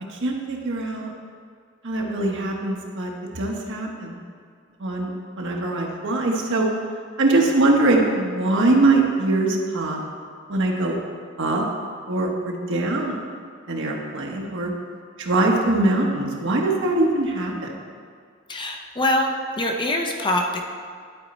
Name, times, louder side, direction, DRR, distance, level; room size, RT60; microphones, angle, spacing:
voice 1, 0.2-1.1 1.8-4.2 4.8-5.1 5.4-6.7 7.2-10.0 10.5-11.0 11.4-11.6 12.1-13.2 13.7-14.7 15.2-17.7, right 2 dB, 65° right, 0 dB, 1.1 m, -22 dB
voice 2, 18.5-20.7, left 1 dB, 25° left, 3 dB, 0.6 m, -24 dB
11.0 x 4.3 x 4.2 m, 2.1 s
head